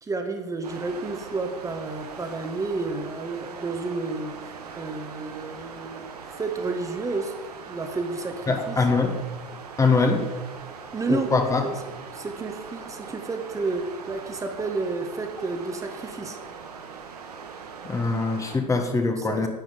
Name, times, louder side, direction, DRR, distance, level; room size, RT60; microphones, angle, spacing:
voice 1, 0.0-7.3 7.6-8.8 10.9-11.3 11.6-11.7 12.1-16.4 19.2-19.5, right 3 dB, 15° right, 5 dB, 1.5 m, -31 dB
sound 1, 0.6-18.6, right 5 dB, 70° right, 1.8 m, -41 dB
voice 2, 8.5-9.1 9.8-10.2 11.1-11.7 17.8-19.5, left 3 dB, 15° left, 5 dB, 1.4 m, -23 dB
10.5 x 9.3 x 5.3 m, 1.2 s
figure-of-eight pair, 85°, 21 cm